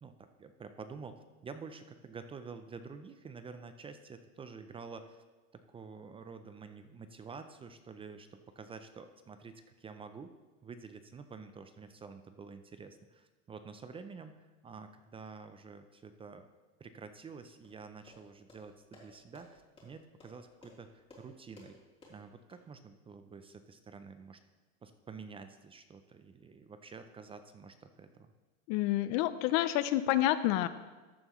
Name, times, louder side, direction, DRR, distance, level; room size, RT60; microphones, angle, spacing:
voice 1, 0.0-5.2 5.5-10.3 10.6-16.5 16.8-21.8 22.1-24.4 24.8-28.3, right 5 dB, 15° right, 9 dB, 0.4 m, -49 dB
sound 1, 17.6-22.6, left 2 dB, 15° left, 3.2 m, -59 dB
voice 2, 28.7-30.7, left 14 dB, 60° left, 14 dB, 0.6 m, -28 dB
14.0 x 7.7 x 3.1 m, 1.2 s
supercardioid pair, 130°, 32 cm